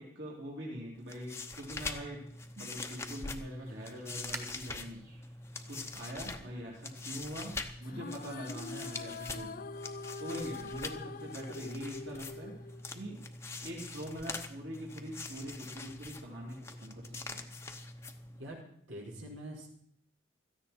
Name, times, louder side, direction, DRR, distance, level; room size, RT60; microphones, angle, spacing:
voice 1, 0.0-2.2 2.6-5.2 5.7-9.5 10.2-12.6 12.9-13.2 13.6-17.4, equal, 55° right, -3 dB, 3.2 m, -43 dB
sound 1, 0.9-18.6, left 3 dB, 15° left, 0.8 m, -44 dB
sound 2, 2.4-7.6, right 2 dB, 15° right, 1.5 m, -52 dB
sound 3, 7.8-13.3, left 3 dB, 45° left, 0.5 m, -44 dB
voice 2, 18.3-19.7, right 1 dB, 85° right, -2 dB, 5.0 m, -45 dB
16.5 x 14.0 x 4.4 m, 0.67 s
head